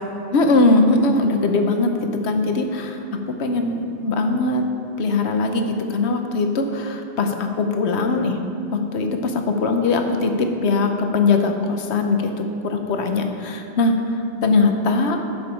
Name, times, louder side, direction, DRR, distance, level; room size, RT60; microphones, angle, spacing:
voice 1, 0.3-4.7 5.0-8.4 8.7-14.0 14.4-15.2, left 3 dB, 70° left, 5 dB, 1.1 m, -21 dB
10.5 x 7.0 x 4.5 m, 2.7 s
omnidirectional pair, 1.2 m